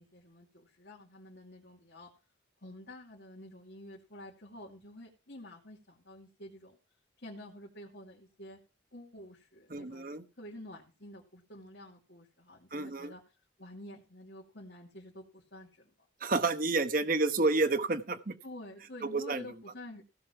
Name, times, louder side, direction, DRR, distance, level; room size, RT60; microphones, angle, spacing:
voice 1, 0.0-2.1 2.6-6.8 7.2-8.6 8.9-16.1 18.4-20.0, left 1 dB, 60° left, -4 dB, 2.5 m, -49 dB
voice 2, 9.7-10.2 12.7-13.1 16.2-18.3 19.1-19.4, right 3 dB, 45° right, 10 dB, 1.1 m, -29 dB
16.0 x 6.6 x 4.6 m, 0.30 s
head